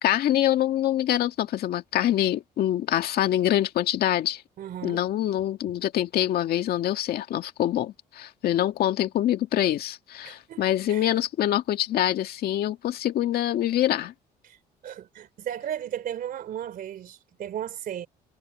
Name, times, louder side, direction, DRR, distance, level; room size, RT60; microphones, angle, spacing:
voice 1, 0.0-4.4 4.8-14.1, left 12 dB, 65° left, 2.0 m, -25 dB
voice 2, 4.6-5.0 10.2-10.6 10.9-11.1 14.4-14.6 14.8-18.1, right 10 dB, 60° right, 3.1 m, -35 dB
cardioid pair, 110°, 17 cm